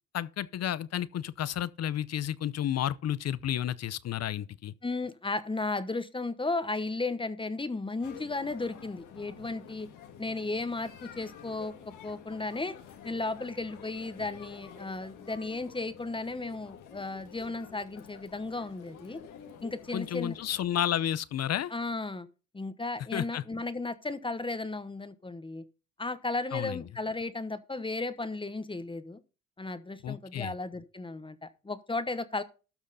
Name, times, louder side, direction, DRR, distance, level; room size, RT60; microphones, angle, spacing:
voice 1, 0.1-4.7 19.9-21.7 23.1-23.4 26.5-26.8 30.0-30.5, left 11 dB, 55° left, 0.7 m, -31 dB
voice 2, 4.8-9.9 10.2-12.8 13.0-19.2 19.6-20.3 21.7-22.3 22.5-25.6 26.0-29.2 29.6-32.4, left 3 dB, 15° left, 1.0 m, -35 dB
sound 1, 8.0-21.0, left 8 dB, 85° left, 1.7 m, -50 dB
12.5 x 6.4 x 4.0 m
cardioid pair, 90°, 30 cm